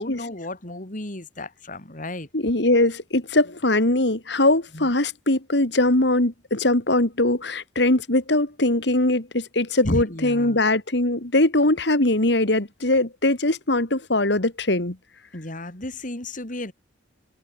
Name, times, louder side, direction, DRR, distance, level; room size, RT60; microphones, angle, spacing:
voice 1, 0.0-2.3 4.7-4.9 9.8-10.6 15.3-16.7, left 1 dB, 45° left, 3.6 m, -32 dB
voice 2, 2.3-15.0, left 2 dB, 65° left, 2.8 m, -21 dB
head